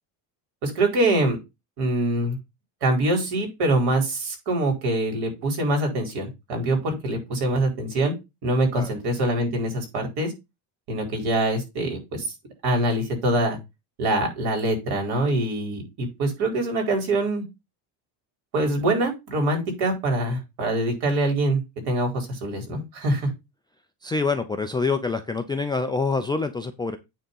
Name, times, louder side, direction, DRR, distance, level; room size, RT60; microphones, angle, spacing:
voice 1, 0.6-1.4 1.8-2.4 2.8-8.1 8.4-10.3 10.9-12.3 12.6-13.6 14.0-17.4 18.5-21.6 21.9-23.3, right 1 dB, 60° right, 3 dB, 4.7 m, -24 dB
voice 2, 24.0-27.0, left 4 dB, 10° left, 5 dB, 0.3 m, -26 dB
9.2 x 3.8 x 5.5 m, 0.23 s
cardioid pair, 155°, 43 cm